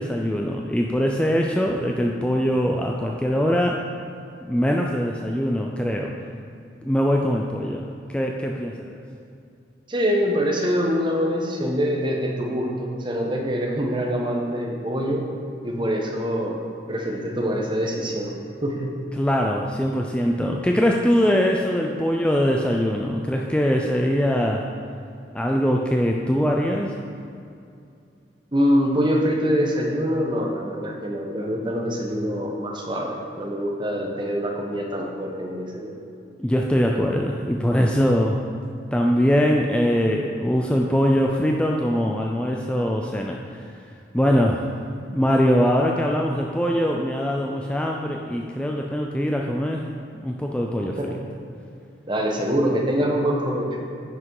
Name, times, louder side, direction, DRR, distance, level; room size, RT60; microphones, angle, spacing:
voice 1, 0.0-3.9 4.5-6.1 6.8-9.0 19.2-24.7 25.3-26.9 36.4-38.4 38.9-43.7 44.1-44.7 45.0-49.9 50.1-51.0, equal, 5° left, 0 dB, 0.4 m, -22 dB
voice 2, 9.9-15.3 15.6-16.6 16.9-18.3 18.6-18.9 28.5-36.0 44.2-44.3 51.0-51.2 52.1-53.9, equal, 25° right, 0 dB, 1.1 m, -24 dB
9.7 x 6.1 x 4.8 m, 2.5 s
head